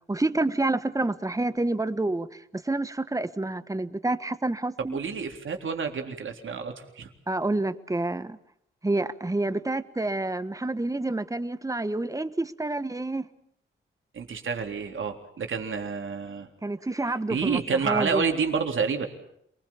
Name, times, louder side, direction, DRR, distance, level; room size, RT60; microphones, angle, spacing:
voice 1, 0.1-5.0 7.3-8.4 8.8-13.3 16.6-18.2, right 2 dB, 15° right, 13 dB, 1.4 m, -28 dB
voice 2, 4.9-7.1 14.1-16.5 17.3-19.1, right 5 dB, 70° right, 4 dB, 3.7 m, -29 dB
28.0 x 20.5 x 7.3 m, 0.72 s
cardioid pair, 80°, 21 cm